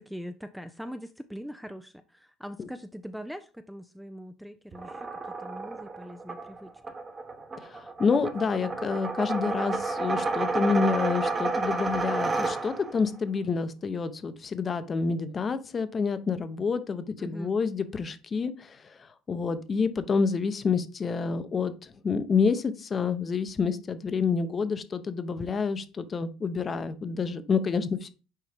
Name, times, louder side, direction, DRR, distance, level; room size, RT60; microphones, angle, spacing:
voice 1, 0.0-5.1 5.4-6.7 17.2-17.5, equal, ahead, 0.4 m, -42 dB
sound 1, 4.7-13.0, right 3 dB, 25° right, 1.1 m, -31 dB
voice 2, 7.6-18.8 19.3-28.1, left 5 dB, 30° left, 0.8 m, -28 dB
6.5 x 4.5 x 3.5 m
supercardioid pair, 90°, 0 cm